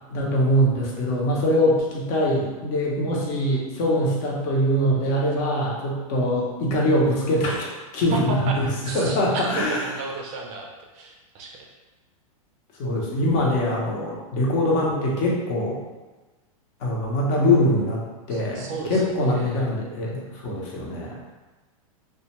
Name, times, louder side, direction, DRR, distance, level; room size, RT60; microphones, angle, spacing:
voice 1, 0.1-8.7 8.9-9.8 12.7-15.8 16.8-18.0 18.3-21.2, left 1 dB, 50° left, -3 dB, 0.8 m, -23 dB
voice 2, 8.1-8.5 8.8-10.7 10.9-11.6 18.3-19.6, right 3 dB, 40° right, 0 dB, 0.4 m, -33 dB
2.3 x 2.2 x 2.9 m, 1.2 s
hypercardioid pair, 120°, 18 cm